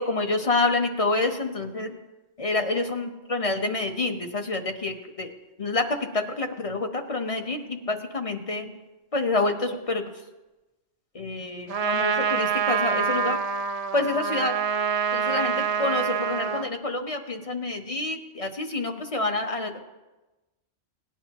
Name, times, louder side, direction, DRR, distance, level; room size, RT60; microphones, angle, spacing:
voice 1, 0.0-2.0 2.4-5.3 5.6-8.7 9.1-10.0 11.1-13.4 13.9-14.6 15.1-19.8, left 2 dB, 30° left, 4 dB, 1.0 m, -27 dB
Trumpet, 11.7-16.7, right 6 dB, 70° right, 0.3 m, -26 dB
18.5 x 10.5 x 3.0 m, 1.1 s
omnidirectional pair, 1.4 m